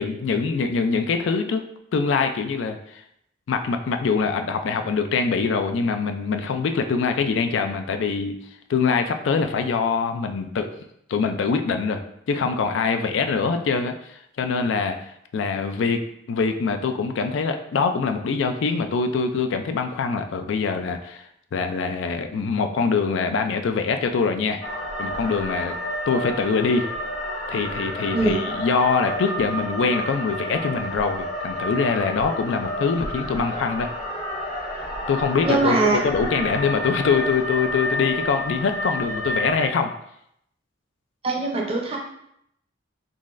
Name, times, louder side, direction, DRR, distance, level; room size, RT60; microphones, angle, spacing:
voice 1, 0.0-1.6 1.9-3.0 3.5-8.3 8.7-10.7 11.1-12.0 12.3-24.6 25.0-25.8 26.1-26.9 27.5-33.9 35.1-39.9, left 5 dB, 70° left, 6 dB, 0.3 m, -24 dB
sound 1, 24.6-39.7, equal, 35° left, 0.9 m, -30 dB
voice 2, 35.4-36.0 41.2-42.0, right 3 dB, 30° right, 0 dB, 0.5 m, -22 dB
3.8 x 3.1 x 2.5 m, 0.74 s
head